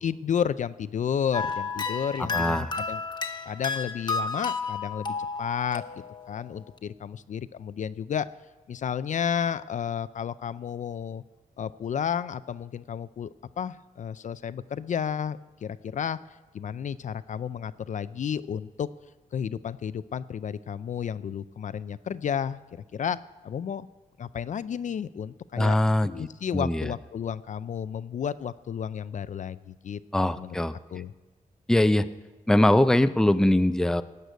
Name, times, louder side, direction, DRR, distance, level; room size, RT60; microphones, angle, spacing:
voice 1, 0.0-3.0 3.5-8.3 8.7-11.2 11.6-16.2 16.5-18.9 19.3-22.6 22.9-23.9 24.2-25.8 26.0-30.0 30.4-30.6 30.9-31.1, left 8 dB, 60° left, 14 dB, 0.4 m, -32 dB
sound 1, 1.3-6.5, left 4 dB, 30° left, 1.1 m, -32 dB
voice 2, 2.2-2.7 25.6-26.3 26.5-26.9 30.1-30.7 31.7-32.1 32.5-34.0, left 1 dB, 5° left, 11 dB, 0.5 m, -22 dB
17.5 x 6.7 x 9.2 m, 1.2 s
cardioid pair, 95°, 15 cm